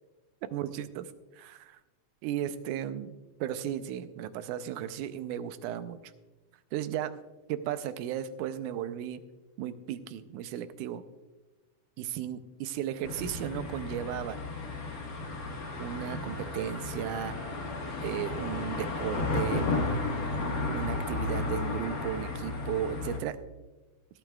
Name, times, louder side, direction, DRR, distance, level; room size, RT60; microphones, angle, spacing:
voice 1, 0.5-1.8 2.2-3.2 3.4-6.0 6.7-7.2 7.5-9.2 9.6-11.0 12.0-14.4 15.8-17.4 18.0-19.7 20.7-23.4, right 10 dB, 85° right, 12 dB, 2.1 m, -35 dB
sound 1, 13.0-23.2, left 3 dB, 40° left, 1.3 m, -33 dB
19.0 x 12.0 x 2.3 m, 1.1 s
omnidirectional pair, 3.5 m